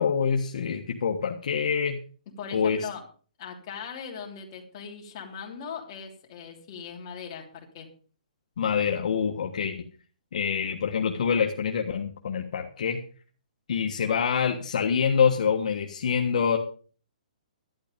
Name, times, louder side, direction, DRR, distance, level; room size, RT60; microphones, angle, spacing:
voice 1, 0.0-2.0 2.5-2.9 8.6-9.8 10.3-13.0 13.7-16.6, left 6 dB, 60° left, 2 dB, 1.5 m, -26 dB
voice 2, 2.4-3.0 3.4-7.9, left 6 dB, 30° left, 0 dB, 3.2 m, -39 dB
12.0 x 11.5 x 5.2 m, 0.41 s
hypercardioid pair, 165°, 4 cm